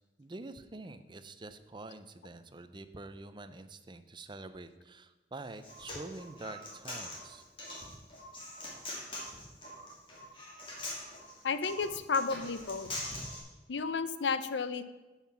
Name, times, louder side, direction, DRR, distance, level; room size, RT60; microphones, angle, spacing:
voice 1, 0.2-7.4, right 2 dB, 25° right, 11 dB, 0.6 m, -46 dB
Human voice, 5.4-13.4, left 1 dB, 30° left, 2.8 m, -43 dB
voice 2, 11.4-12.9 13.7-14.8, left 5 dB, 85° left, 12 dB, 0.6 m, -32 dB
10.0 x 5.7 x 7.2 m, 1.1 s
head